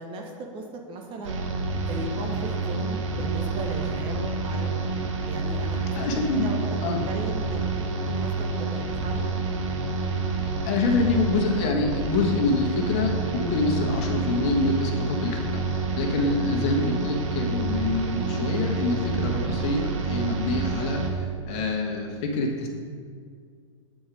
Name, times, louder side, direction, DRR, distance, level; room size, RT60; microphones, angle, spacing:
voice 1, 0.0-1.4 1.8-4.7 5.3-5.9 6.3-6.6 7.0-9.3 16.3-16.6, right 2 dB, 30° right, 2 dB, 1.0 m, -37 dB
sound 1, 1.2-21.1, right 3 dB, 65° right, 1.1 m, -28 dB
voice 2, 5.9-6.5 6.8-7.0 10.3-22.7, left 3 dB, 40° left, 1 dB, 1.3 m, -26 dB
7.7 x 4.4 x 5.2 m, 2.1 s
hypercardioid pair, 115°, 17 cm